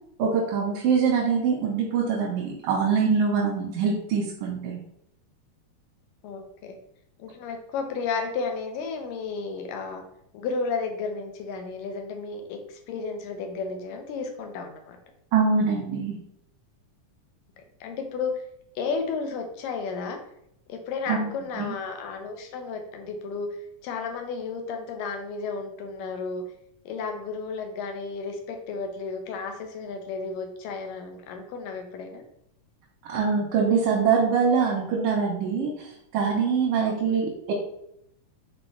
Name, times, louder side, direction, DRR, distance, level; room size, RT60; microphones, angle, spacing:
voice 1, 0.2-4.8 15.3-16.2 21.1-21.3 21.6-21.7 33.1-37.5, right 5 dB, 85° right, -5 dB, 3.0 m, -24 dB
voice 2, 6.2-6.8 7.2-10.0 10.3-15.0 17.8-18.4 18.8-20.2 20.7-23.5 23.8-26.4 26.9-32.2 36.7-37.2, left 4 dB, 85° left, 5 dB, 2.6 m, -33 dB
6.9 x 4.4 x 3.4 m, 0.75 s
omnidirectional pair, 3.8 m